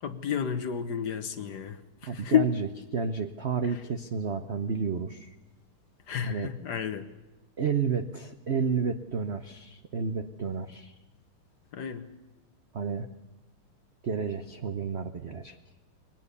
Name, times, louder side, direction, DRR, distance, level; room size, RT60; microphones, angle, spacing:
voice 1, 0.0-2.5 6.1-7.1 11.7-12.0, left 9 dB, 55° left, 10 dB, 1.5 m, -30 dB
voice 2, 2.0-5.3 6.2-6.5 7.6-11.0 12.7-13.1 14.0-15.6, right 5 dB, 70° right, 8 dB, 0.6 m, -31 dB
22.0 x 18.0 x 6.8 m, 1.1 s
omnidirectional pair, 2.4 m